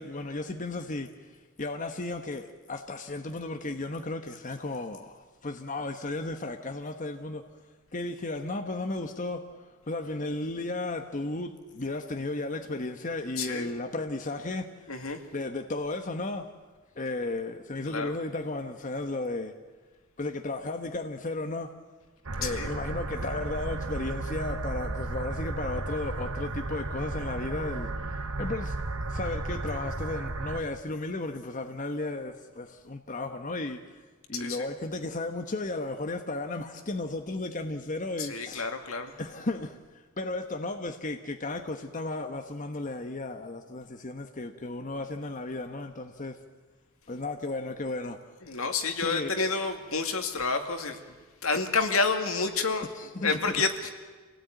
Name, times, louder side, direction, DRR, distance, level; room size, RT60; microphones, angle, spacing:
voice 1, 0.0-1.3 1.6-7.4 7.9-9.4 9.9-14.9 15.3-16.5 17.0-19.5 20.2-21.7 22.4-28.8 29.1-34.0 34.3-38.7 39.2-39.8 40.2-46.4 47.1-48.2 49.0-49.4 53.0-53.6 53.8-53.9, left 2 dB, 40° left, 1.1 m, -34 dB
voice 2, 13.4-13.7 14.9-15.2 17.9-18.1 22.4-22.7 34.3-34.7 38.2-39.2 48.4-51.0 51.4-52.9 53.2-53.9, left 4 dB, 80° left, 2.2 m, -29 dB
sound 1, 22.3-30.6, right 2 dB, 90° right, 1.4 m, -34 dB
27.0 x 17.5 x 9.2 m
head